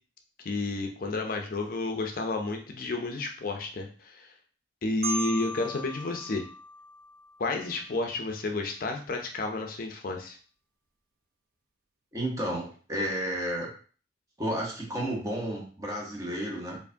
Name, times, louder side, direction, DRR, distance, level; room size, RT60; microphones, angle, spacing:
voice 1, 0.4-4.3 4.8-6.4 7.4-10.4, left 2 dB, 50° left, 3 dB, 0.5 m, -31 dB
Marimba xylophone, 5.0-7.9, equal, 55° right, 0.5 m, -38 dB
voice 2, 12.1-13.7 14.4-16.8, equal, 20° right, -2 dB, 1.0 m, -32 dB
4.5 x 2.5 x 2.6 m, 0.40 s
head